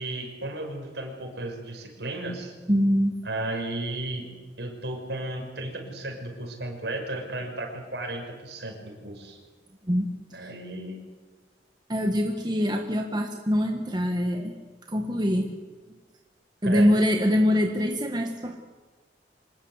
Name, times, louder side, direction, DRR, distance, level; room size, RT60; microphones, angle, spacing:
voice 1, 0.0-2.5 3.2-4.3 4.6-9.4 10.3-11.0 16.6-16.9, right 1 dB, 70° right, 3 dB, 6.1 m, -34 dB
voice 2, 2.7-3.1 9.9-10.1 11.9-14.5 14.9-15.6 16.6-18.6, equal, 25° right, 3 dB, 1.6 m, -24 dB
25.5 x 20.5 x 8.3 m, 1.3 s
head